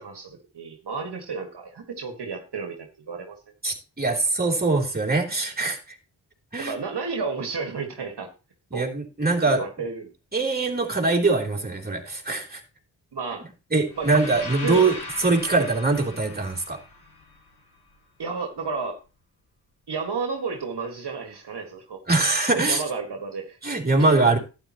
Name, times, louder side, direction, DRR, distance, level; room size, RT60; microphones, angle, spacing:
voice 1, 0.0-3.5 6.6-8.3 8.7-8.9 9.5-10.1 13.1-13.5 14.0-14.1 14.6-14.9 15.5-15.7 18.2-19.0 19.9-22.0 22.5-23.6 24.0-24.4, right 4 dB, 65° right, 4 dB, 1.9 m, -32 dB
voice 2, 3.6-6.0 6.5-6.7 8.7-9.6 10.3-12.6 13.7-16.8 22.1-22.8 23.6-24.4, right 3 dB, 20° right, -1 dB, 3.3 m, -23 dB
sound 1, 13.9-17.9, left 3 dB, 60° left, 7.3 m, -39 dB
12.0 x 9.8 x 3.0 m, 0.31 s
cardioid pair, 50°, 44 cm